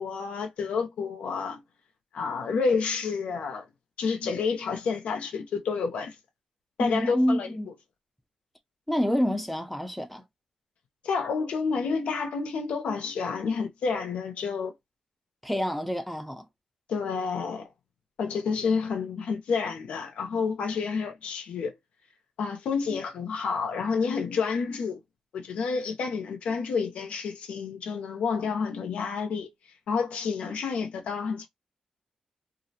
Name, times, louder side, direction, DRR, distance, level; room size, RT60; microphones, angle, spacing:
voice 1, 0.0-1.6 2.1-3.6 4.0-6.2 6.8-7.5 11.0-14.7 16.9-17.7 18.2-21.7 22.4-25.0 25.3-29.5 29.9-31.5, left 5 dB, 90° left, 0.6 m, -29 dB
voice 2, 6.8-7.7 8.9-10.2 15.4-16.4, equal, ahead, 0.4 m, -27 dB
2.5 x 2.0 x 2.7 m
wide cardioid pair, 115°, 2 cm